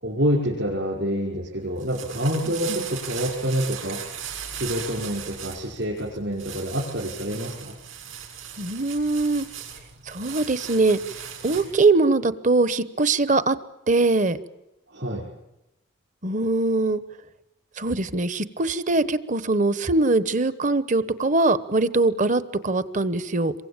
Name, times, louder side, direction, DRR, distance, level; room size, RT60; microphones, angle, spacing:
voice 1, 0.0-4.0 4.5-7.7 14.9-15.3, equal, 60° right, -4 dB, 5.5 m, -27 dB
sound 1, 1.6-11.8, right 8 dB, 90° right, 7.1 m, -38 dB
voice 2, 8.6-9.5 10.1-11.0 11.4-13.6 13.9-14.4 16.2-17.0 17.8-23.5, right 3 dB, 40° right, 15 dB, 1.0 m, -22 dB
27.5 x 23.5 x 8.9 m, 0.93 s
head